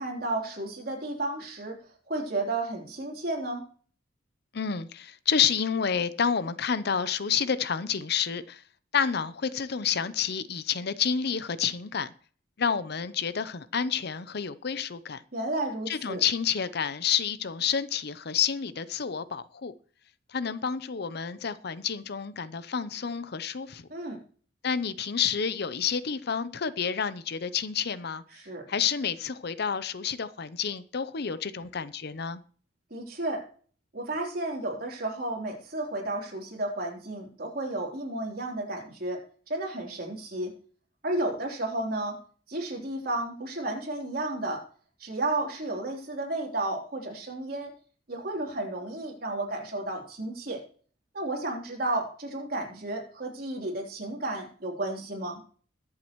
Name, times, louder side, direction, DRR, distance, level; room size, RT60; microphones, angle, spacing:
voice 1, 0.0-1.8 2.1-3.7 15.3-16.2 23.9-24.2 28.4-28.7 32.9-33.4 33.9-40.5 41.0-42.2 42.5-44.6 45.0-47.7 48.1-50.6 51.1-55.4, right 2 dB, 55° right, 3.6 m, -32 dB
voice 2, 4.5-8.6 8.9-12.1 12.6-15.2 15.9-19.7 20.3-23.9 24.6-28.2 28.7-32.4, left 7 dB, 60° left, 0.7 m, -29 dB
22.0 x 7.5 x 3.1 m
head